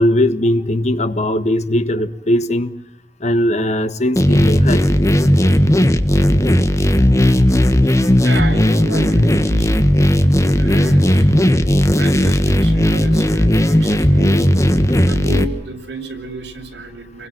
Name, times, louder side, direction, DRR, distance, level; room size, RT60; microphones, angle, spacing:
voice 1, 0.0-2.7 3.2-4.8, left 1 dB, 40° left, 1.5 m, -18 dB
sound 1, 4.2-15.4, equal, 20° left, 1.5 m, -14 dB
voice 2, 8.2-9.9 10.6-11.3 11.9-14.7 15.1-17.3, right 1 dB, 75° right, 6.0 m, -30 dB
30.0 x 23.0 x 6.1 m
head